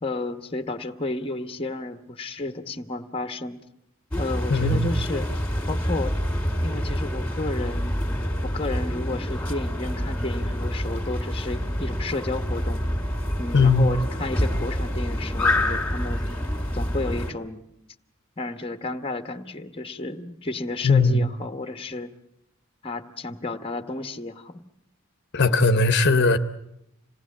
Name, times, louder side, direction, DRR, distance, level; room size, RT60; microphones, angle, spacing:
voice 1, 0.0-3.6 4.2-5.3 5.7-6.2 6.6-7.9 8.4-12.8 13.4-16.2 16.7-17.6 18.4-22.1 22.8-24.6, left 2 dB, 25° left, 1.1 m, -32 dB
sound 1, 4.1-17.3, left 1 dB, 10° left, 2.4 m, -27 dB
voice 2, 4.5-4.9 13.5-13.9 20.8-21.2 25.3-26.4, left 3 dB, 55° left, 0.9 m, -18 dB
27.0 x 18.5 x 8.5 m
head